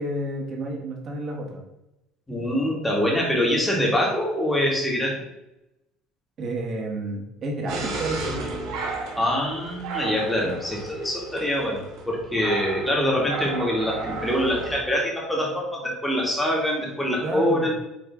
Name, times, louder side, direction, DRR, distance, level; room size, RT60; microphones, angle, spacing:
voice 1, 0.0-1.6 6.4-8.4 17.2-17.7, right 1 dB, 35° right, 0 dB, 1.3 m, -30 dB
voice 2, 2.3-5.2 9.2-17.8, equal, 5° left, -2 dB, 1.7 m, -24 dB
sound 1, 7.7-14.8, right 3 dB, 80° right, 2.0 m, -33 dB
8.7 x 3.2 x 3.5 m, 0.92 s
cardioid pair, 145°, 0 cm